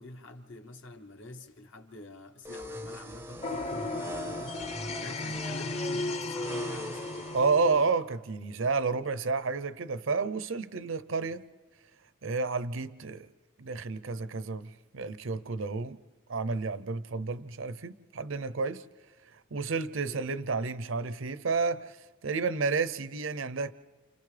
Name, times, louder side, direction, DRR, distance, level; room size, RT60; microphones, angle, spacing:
voice 1, 0.0-7.2 20.0-20.2, left 1 dB, 65° left, 1.1 m, -46 dB
sound 1, 2.4-7.5, equal, 10° right, 0.5 m, -42 dB
sound 2, 3.4-7.9, left 2 dB, 30° left, 0.7 m, -35 dB
voice 2, 7.3-11.4 12.2-13.3 13.6-16.0 16.3-18.8 19.3-22.0 22.2-23.7, right 4 dB, 70° right, 0.6 m, -31 dB
29.5 x 29.0 x 3.3 m
head